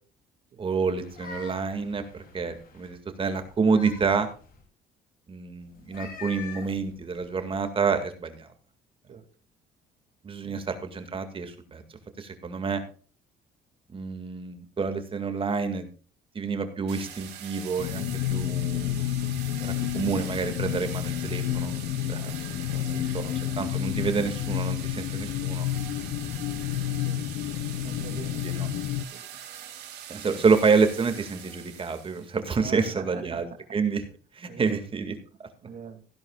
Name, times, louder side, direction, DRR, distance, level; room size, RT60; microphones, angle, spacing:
voice 1, 0.6-4.3 5.3-8.5 10.2-11.8 12.2-12.8 13.9-15.9 16.3-19.0 19.6-21.8 22.1-25.7 28.4-28.7 30.1-34.0 34.3-35.1 35.4-35.5, right 5 dB, 30° right, 8 dB, 2.1 m, -28 dB
sound 1, 0.9-2.9 3.4-4.6 5.7-7.6, left 5 dB, 60° left, 3.1 m, -45 dB
sound 2, 16.9-32.4, right 10 dB, 80° right, 3.0 m, -43 dB
sound 3, 17.8-29.1, left 12 dB, 75° left, 0.8 m, -30 dB
voice 2, 22.8-23.3 26.9-27.2 27.8-28.6 29.1-29.3 32.6-33.4 34.5-34.8 35.6-36.0, right 7 dB, 50° right, 7 dB, 2.4 m, -43 dB
16.0 x 10.5 x 2.4 m, 0.39 s
cardioid pair, 110°, 17 cm